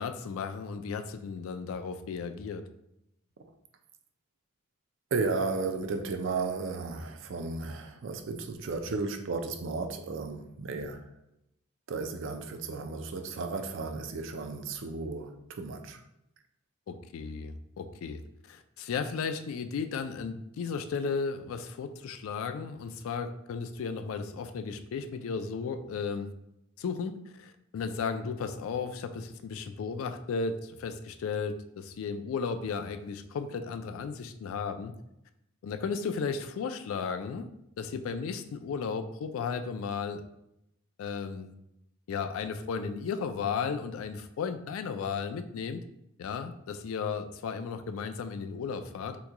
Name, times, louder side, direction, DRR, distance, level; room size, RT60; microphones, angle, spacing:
voice 1, 0.0-2.7 16.9-18.2 18.5-26.3 26.8-34.9 35.6-37.5 37.8-40.2 41.0-41.5 42.1-45.8 46.2-49.2, left 5 dB, 75° left, 9 dB, 0.3 m, -34 dB
voice 2, 5.1-11.0 11.9-16.0, right 4 dB, 60° right, 6 dB, 0.4 m, -34 dB
2.9 x 2.2 x 3.6 m, 0.82 s
head